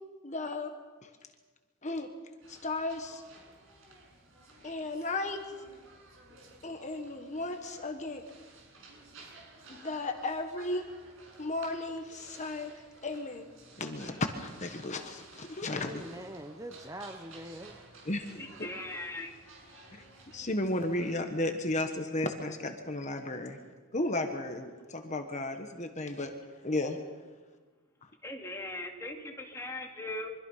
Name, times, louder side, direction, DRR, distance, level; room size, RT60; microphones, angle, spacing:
voice 1, 0.2-0.7 1.0-1.1 1.8-2.1 2.5-3.2 4.6-5.4 6.6-8.2 9.7-10.9 11.4-12.7 13.0-13.4 13.8-16.0 18.1-18.7 20.3-23.6 23.9-26.3 26.6-27.0, left 2 dB, 30° left, 5 dB, 1.5 m, -34 dB
sound 1, 2.4-21.2, right 2 dB, 60° right, 6.5 m, -54 dB
voice 2, 15.7-17.8, right 1 dB, 15° right, 6 dB, 0.9 m, -43 dB
voice 3, 18.4-19.3 28.2-30.3, left 2 dB, 10° left, 1 dB, 2.6 m, -39 dB
24.5 x 24.5 x 5.7 m, 1.4 s
head